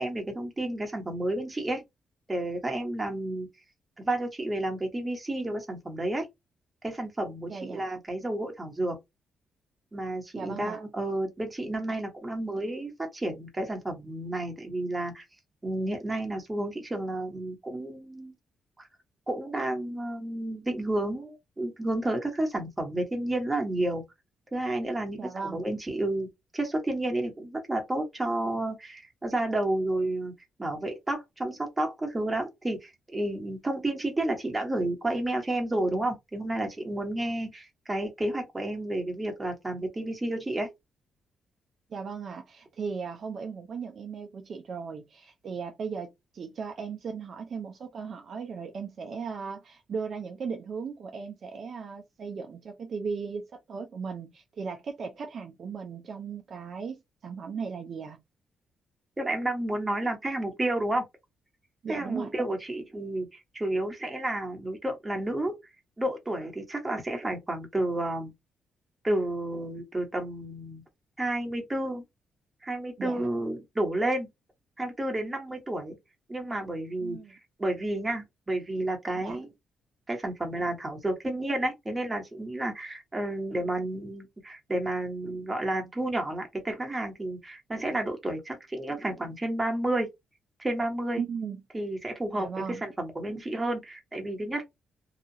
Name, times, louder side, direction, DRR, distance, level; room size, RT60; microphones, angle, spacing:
voice 1, 0.0-1.8 2.3-3.5 4.0-6.3 6.8-9.0 9.9-15.2 15.6-18.3 18.8-18.9 19.3-24.0 24.5-26.3 26.5-30.3 30.6-40.7 59.2-61.0 61.9-65.6 66.0-68.3 69.0-70.8 71.2-72.0 72.6-74.3 74.8-76.0 76.3-79.5 80.1-90.1 90.6-91.2 91.7-94.6, right 1 dB, 15° right, 1.2 m, -31 dB
voice 2, 7.5-7.8 10.3-10.8 25.2-25.6 41.9-58.2 61.8-62.3 73.0-73.3 77.0-77.3 79.2-79.4 91.2-91.6 92.4-92.8, right 5 dB, 55° right, 0.6 m, -37 dB
2.9 x 2.4 x 2.7 m
cardioid pair, 100°, 0 cm